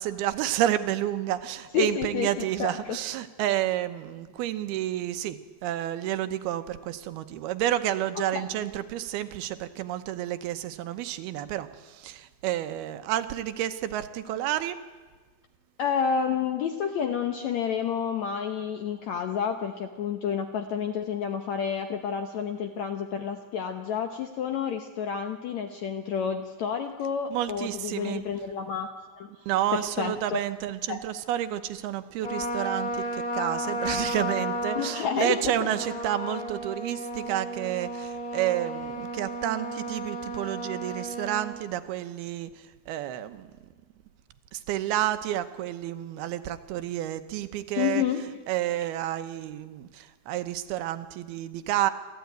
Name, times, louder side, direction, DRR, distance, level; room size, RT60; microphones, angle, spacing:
voice 1, 0.0-14.8 27.3-28.2 29.5-43.5 44.5-48.0 48.5-51.9, right 12 dB, 80° right, 10 dB, 2.9 m, -30 dB
voice 2, 1.7-3.0 8.3-8.5 15.8-28.9 29.2-29.3 29.7-30.4 30.9-31.0 34.7-35.5 47.8-48.2, left 7 dB, 70° left, 6 dB, 1.7 m, -30 dB
Trumpet, 32.2-41.6, equal, 35° left, 3.9 m, -33 dB
27.5 x 14.0 x 9.4 m, 1.4 s
omnidirectional pair, 4.5 m